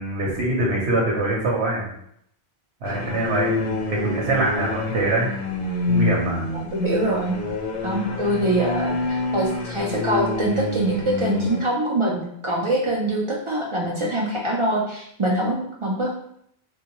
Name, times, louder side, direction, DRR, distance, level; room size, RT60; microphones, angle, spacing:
voice 1, 0.0-1.9 2.8-5.3 5.9-6.5, right 2 dB, 85° right, -4 dB, 1.0 m, -24 dB
sound 1, 2.8-11.6, left 3 dB, 60° left, 0.7 m, -27 dB
voice 2, 6.5-7.4 7.8-16.1, right 1 dB, 45° right, -4 dB, 0.4 m, -24 dB
3.5 x 2.2 x 2.9 m, 0.71 s
omnidirectional pair, 1.1 m